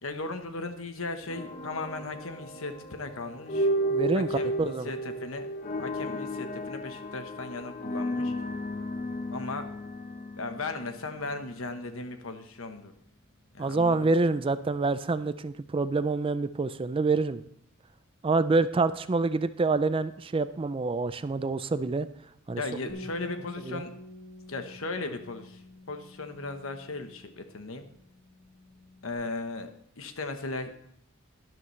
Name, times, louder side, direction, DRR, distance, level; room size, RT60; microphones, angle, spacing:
voice 1, 0.0-3.7 4.1-5.5 5.8-8.3 9.3-9.7 10.4-12.9 13.5-14.2 22.6-23.9 24.5-25.6 25.9-27.8 29.0-29.7 30.0-30.7, left 3 dB, 75° left, 7 dB, 1.1 m, -37 dB
sound 1, 1.3-11.4, equal, 35° left, 0.9 m, -33 dB
voice 2, 3.9-4.3 4.6-4.9 13.6-17.4 18.2-22.1 22.5-22.6 23.7-23.8, right 3 dB, 25° right, 14 dB, 0.4 m, -27 dB
Bass guitar, 22.9-29.1, left 2 dB, 50° left, 1.8 m, -48 dB
12.0 x 11.0 x 3.2 m, 0.73 s
head